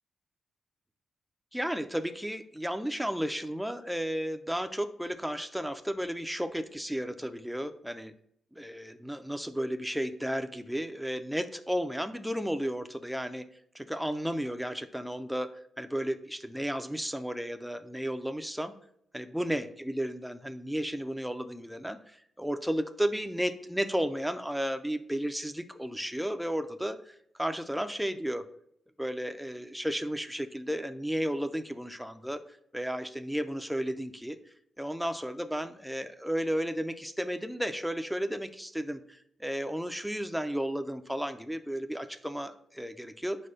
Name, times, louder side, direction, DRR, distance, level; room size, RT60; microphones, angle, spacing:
voice 1, 1.5-8.1 8.5-13.5 13.7-15.5 15.8-18.7 19.1-28.4 29.0-32.4 32.7-34.4 34.8-43.5, equal, ahead, 9 dB, 0.4 m, -33 dB
4.7 x 4.2 x 4.9 m, 0.71 s
wide cardioid pair, 135°, 0 cm